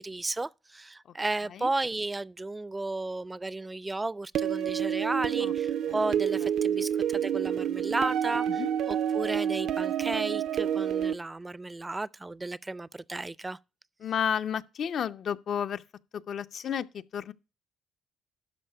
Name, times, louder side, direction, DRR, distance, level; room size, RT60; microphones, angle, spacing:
voice 1, 0.0-13.6, right 2 dB, 20° right, 0.4 m, -34 dB
sound 1, 4.3-11.1, right 9 dB, 75° right, 0.5 m, -28 dB
voice 2, 14.0-15.8 16.3-17.3, left 8 dB, 60° left, 0.5 m, -31 dB
12.0 x 4.9 x 5.5 m
cardioid pair, 90°, 0 cm